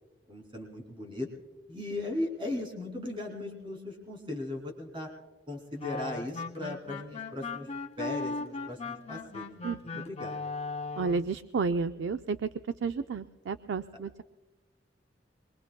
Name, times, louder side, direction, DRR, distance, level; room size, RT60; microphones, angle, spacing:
voice 1, 0.3-1.3 1.7-5.1 5.5-7.7 8.0-9.5 9.8-10.4, left 2 dB, 30° right, 1 dB, 2.7 m, -37 dB
sound 1, 5.8-11.3, left 3 dB, 35° left, 0.5 m, -38 dB
voice 2, 9.6-10.0 11.0-12.5 12.8-14.2, right 4 dB, 75° right, 9 dB, 0.4 m, -31 dB
24.5 x 22.5 x 2.2 m, 1.2 s
head